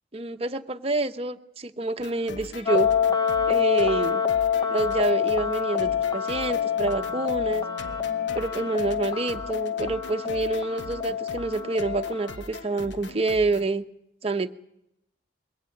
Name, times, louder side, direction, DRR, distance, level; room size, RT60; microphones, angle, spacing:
voice 1, 0.1-2.9 3.5-4.2 4.7-7.6 8.3-13.8 14.2-14.5, right 3 dB, 35° right, 7 dB, 0.8 m, -27 dB
sound 1, 2.0-13.7, left 2 dB, 80° left, 1.1 m, -42 dB
sound 2, 2.7-12.3, left 8 dB, 20° left, 0.7 m, -26 dB
22.0 x 16.5 x 8.4 m, 0.78 s
head